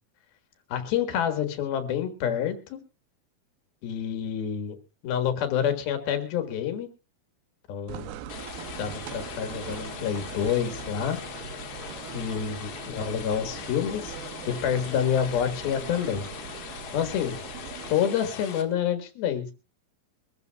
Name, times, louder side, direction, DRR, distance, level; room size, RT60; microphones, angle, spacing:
voice 1, 0.7-2.8 3.8-4.8 5.0-6.9 7.7-8.2 8.8-11.2 12.1-14.2 14.5-16.3 16.9-17.4 17.9-19.5, left 8 dB, 85° left, 8 dB, 3.5 m, -28 dB
sound 1, 7.9-17.9, right 9 dB, 85° right, 2.7 m, -41 dB
sound 2, 8.3-18.6, left 8 dB, 70° left, 3.1 m, -40 dB
23.5 x 14.0 x 2.3 m, 0.30 s
omnidirectional pair, 4.2 m